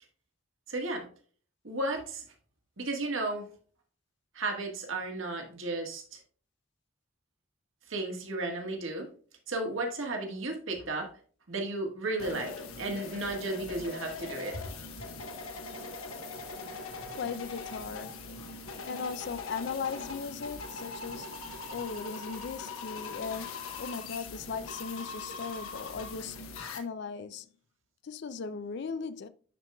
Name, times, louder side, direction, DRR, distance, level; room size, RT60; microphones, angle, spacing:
voice 1, 0.7-1.0 1.6-2.2 2.8-3.4 4.3-6.2 7.9-9.1 9.5-11.1 11.5-14.7, right 2 dB, 70° right, 1.6 m, -34 dB
sound 1, 12.2-26.8, left 4 dB, 85° left, 1.1 m, -41 dB
voice 2, 17.1-18.1 18.8-21.3 21.7-27.5 28.0-29.3, left 5 dB, 55° left, 0.4 m, -38 dB
11.0 x 4.5 x 2.3 m
head